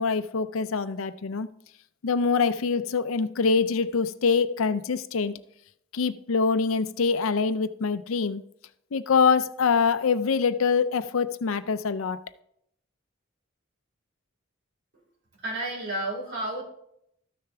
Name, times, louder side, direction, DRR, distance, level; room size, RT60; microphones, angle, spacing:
voice 1, 0.0-1.5 2.0-5.4 5.9-8.4 8.9-12.2, left 5 dB, 80° left, 0.5 m, -24 dB
voice 2, 15.4-16.6, right 1 dB, 55° right, 4.1 m, -31 dB
13.5 x 6.7 x 3.5 m
head